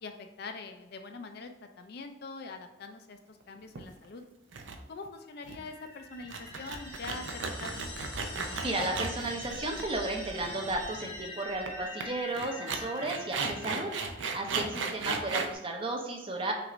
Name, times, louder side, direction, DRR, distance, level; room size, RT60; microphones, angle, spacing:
voice 1, 0.0-4.2 4.9-8.1 14.9-15.0, left 3 dB, 50° left, 6 dB, 0.4 m, -44 dB
sound 1, 3.8-4.1 4.5-4.8 5.1-5.2 5.5-5.7 6.2-10.1 10.4-10.5 11.7-11.8 12.0-12.1 12.3-15.5, right 4 dB, 65° right, 0.5 m, -35 dB
sound 2, 5.3-14.6, left 2 dB, 85° left, 1.3 m, -44 dB
voice 2, 8.6-13.9 14.3-16.5, right 2 dB, 25° right, 1 dB, 0.6 m, -34 dB
6.0 x 2.5 x 3.1 m, 1.0 s
head